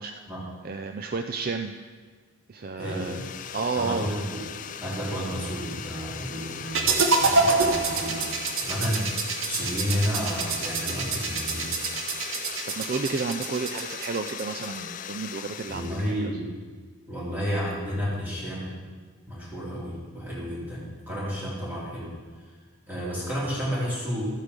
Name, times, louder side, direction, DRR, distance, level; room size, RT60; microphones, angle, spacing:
voice 1, 0.6-1.8 2.5-4.1 12.4-16.2, right 4 dB, 45° right, 6 dB, 0.4 m, -32 dB
voice 2, 2.7-3.2 3.7-4.4 4.8-6.9 7.2-8.2 8.6-9.1 9.5-11.7 15.7-16.5 17.1-18.7 19.3-22.1 22.9-24.2, equal, 10° right, -7 dB, 3.2 m, -31 dB
sound 1, 2.8-16.3, left 8 dB, 40° left, 0.4 m, -39 dB
sound 2, 6.7-14.8, right 3 dB, 70° right, 1.0 m, -27 dB
13.0 x 8.1 x 5.3 m, 1.5 s
head